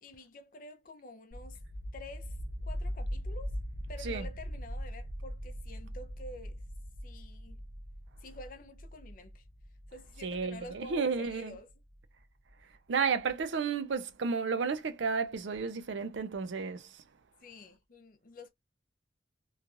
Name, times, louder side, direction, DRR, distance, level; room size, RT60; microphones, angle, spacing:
voice 1, 0.0-1.6 1.9-2.4 2.6-3.6 3.9-6.6 7.0-7.6 8.2-9.4 9.9-11.7 17.4-18.5, left 1 dB, 50° left, 0.5 m, -48 dB
sound 1, 1.3-12.0, equal, 60° right, 0.8 m, -41 dB
voice 2, 10.2-11.6 12.9-17.0, right 5 dB, 85° right, 0.5 m, -32 dB
3.1 x 2.4 x 2.4 m
head